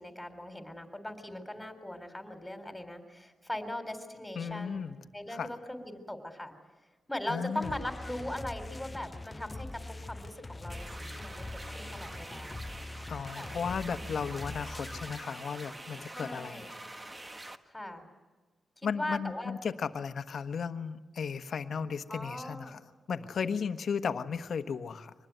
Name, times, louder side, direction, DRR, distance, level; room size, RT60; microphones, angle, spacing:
voice 1, 0.0-4.8 5.1-6.5 7.1-12.6 13.3-14.0 16.1-16.7 17.7-18.1 18.8-19.5 22.1-22.8, left 1 dB, 10° left, 7 dB, 3.8 m, -40 dB
voice 2, 4.3-5.0 5.3-5.5 7.3-7.8 13.1-16.6 18.8-22.8 23.1-25.1, left 6 dB, 65° left, 9 dB, 1.3 m, -35 dB
sound 1, 7.5-15.2, left 2 dB, 25° left, 0.7 m, -43 dB
sound 2, 10.7-17.6, right 1 dB, 20° right, 1.4 m, -46 dB
24.5 x 20.0 x 9.3 m, 1.3 s
cardioid pair, 90°, 0 cm